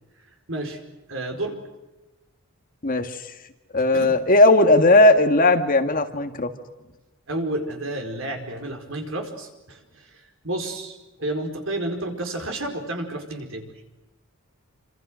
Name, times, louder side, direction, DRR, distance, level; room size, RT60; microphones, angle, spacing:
voice 1, 0.5-0.8 1.1-1.5 3.9-4.1 7.3-13.7, right 1 dB, 65° right, 4 dB, 4.9 m, -31 dB
voice 2, 2.8-3.2 3.7-6.5, left 2 dB, 40° left, 7 dB, 1.9 m, -17 dB
28.0 x 26.5 x 6.4 m, 1.1 s
head